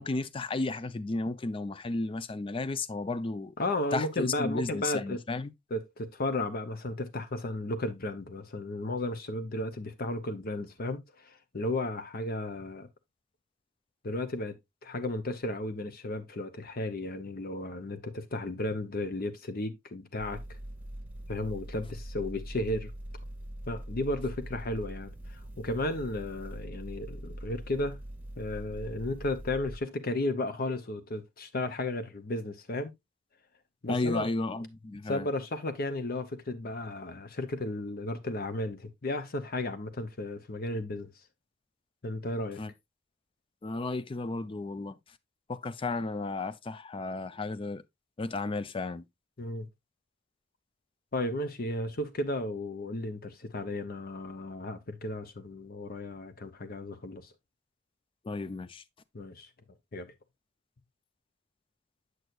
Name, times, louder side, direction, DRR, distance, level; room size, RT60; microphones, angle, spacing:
voice 1, 0.0-3.5 3.9-5.5 33.9-35.3 42.6-42.7 43.6-45.0 45.5-47.8 48.2-49.0 58.3-58.8, left 3 dB, 25° left, 0.4 m, -33 dB
voice 2, 3.6-5.2 5.7-12.9 14.0-14.6 14.8-20.4 21.3-22.9 23.7-28.0 28.4-32.9 33.8-34.3 35.1-41.1 42.0-42.6 49.4-49.7 51.1-57.3 59.1-59.5 59.9-60.1, left 2 dB, 50° left, 0.9 m, -34 dB
sound 1, 20.2-29.8, right 1 dB, 10° right, 1.2 m, -42 dB
8.0 x 6.3 x 2.5 m
head